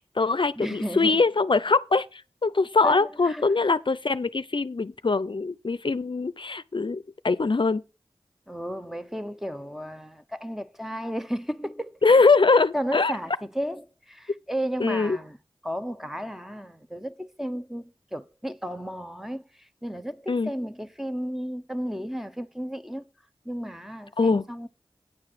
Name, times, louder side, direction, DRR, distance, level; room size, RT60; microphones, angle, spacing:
voice 1, 0.0-7.8 12.0-13.1 14.8-15.2 20.3-20.5 24.2-24.5, left 4 dB, 55° left, 0.6 m, -22 dB
voice 2, 0.6-1.2 2.8-3.4 8.5-12.0 12.7-15.4 15.6-23.0 23.4-24.7, equal, 5° right, 0.8 m, -33 dB
9.7 x 4.8 x 7.7 m
cardioid pair, 40°, 10 cm